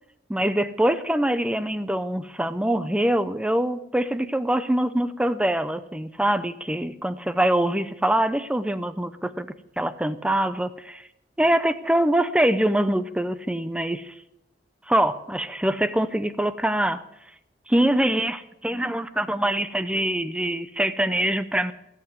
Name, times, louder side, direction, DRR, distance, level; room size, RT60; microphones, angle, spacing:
voice 1, 0.3-9.5 9.8-11.0 11.4-14.1 14.9-17.0 17.7-21.7, right 1 dB, 5° right, 12 dB, 0.5 m, -24 dB
16.5 x 7.1 x 9.4 m, 0.85 s
head